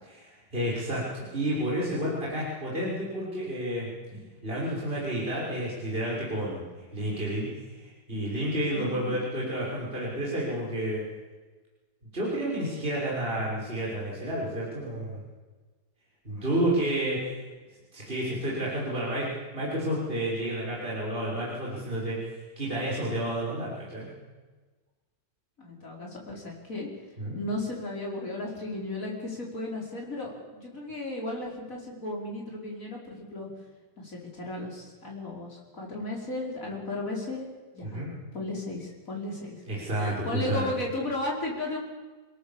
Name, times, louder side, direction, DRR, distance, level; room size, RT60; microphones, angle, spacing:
voice 1, 0.5-6.6 6.9-7.5 7.8-11.0 12.1-15.2 16.2-17.2 17.9-24.1 27.2-27.4 37.8-38.1 39.7-40.7, right 1 dB, 30° right, -6 dB, 6.3 m, -30 dB
voice 2, 8.7-9.2 25.6-26.9 27.3-33.5 34.0-38.0 38.3-39.6 40.0-41.8, left 2 dB, 45° left, -2 dB, 5.6 m, -35 dB
29.5 x 17.0 x 7.4 m, 1.3 s
omnidirectional pair, 2.0 m